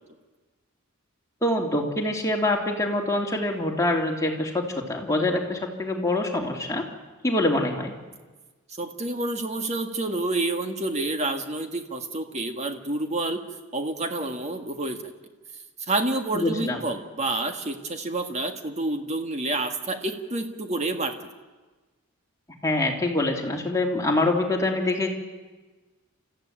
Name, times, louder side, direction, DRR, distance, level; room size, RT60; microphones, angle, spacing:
voice 1, 1.4-6.8 7.2-7.9 16.3-16.8 22.6-25.1, left 2 dB, 15° left, 0 dB, 3.0 m, -25 dB
voice 2, 8.8-13.4 13.7-15.0 15.9-21.2, right 2 dB, 30° right, 6 dB, 1.8 m, -28 dB
29.0 x 14.5 x 8.9 m, 1.3 s
head